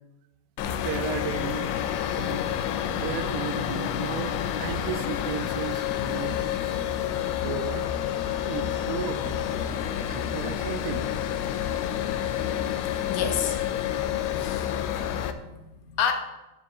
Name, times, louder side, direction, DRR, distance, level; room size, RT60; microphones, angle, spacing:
sound 1, 0.6-15.3, left 10 dB, 85° left, 2.5 m, -29 dB
voice 1, 0.6-1.8 2.1-7.0 7.4-11.1, right 10 dB, 80° right, 11 dB, 2.2 m, -36 dB
voice 2, 13.1-13.8 14.2-16.1, left 7 dB, 70° left, 5 dB, 2.3 m, -32 dB
12.0 x 9.8 x 3.2 m, 1.0 s
omnidirectional pair, 4.5 m